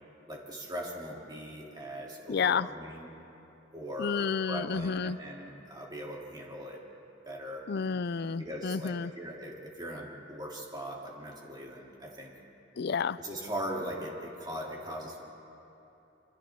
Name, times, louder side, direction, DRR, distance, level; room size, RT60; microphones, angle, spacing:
voice 1, 0.3-3.1 3.7-6.8 7.2-7.7 8.4-12.3 13.2-15.2, equal, 20° right, -3 dB, 3.1 m, -40 dB
voice 2, 2.3-2.7 4.0-5.2 7.7-9.1 12.8-13.2, left 5 dB, 55° left, 16 dB, 0.5 m, -30 dB
29.0 x 25.0 x 3.7 m, 3.0 s
head